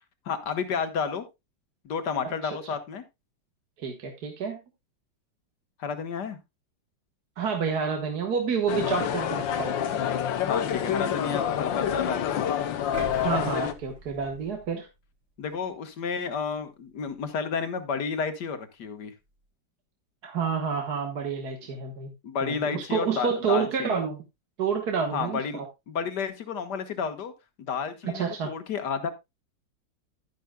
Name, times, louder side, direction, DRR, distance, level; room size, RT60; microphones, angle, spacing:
voice 1, 0.3-1.2 1.8-3.0 5.8-6.4 10.4-12.4 15.4-19.1 22.2-24.0 25.1-27.3 27.6-29.1, left 6 dB, 65° left, 9 dB, 1.9 m, -31 dB
voice 2, 3.8-4.6 7.4-9.8 13.1-14.9 20.2-22.1 22.4-24.2 24.6-25.7 28.0-28.5, right 6 dB, 60° right, 3 dB, 1.9 m, -29 dB
sound 1, 8.7-13.7, left 9 dB, 85° left, 1.7 m, -27 dB
sound 2, 12.9-15.1 15.6-15.7, right 1 dB, 90° right, 4.8 m, -42 dB
11.5 x 10.5 x 2.3 m, 0.22 s
omnidirectional pair, 2.0 m